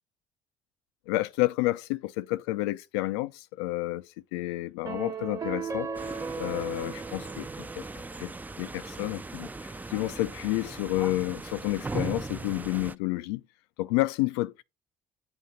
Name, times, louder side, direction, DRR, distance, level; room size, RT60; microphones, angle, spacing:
voice 1, 1.1-7.9 8.2-8.3 8.6-13.4 13.8-14.6, left 18 dB, 80° left, 0.4 m, -30 dB
sound 1, 4.8-8.3, right 5 dB, 25° right, 1.1 m, -37 dB
sound 2, 5.9-12.9, right 3 dB, 10° right, 0.4 m, -39 dB
7.7 x 2.7 x 5.1 m
hypercardioid pair, 55°, 13 cm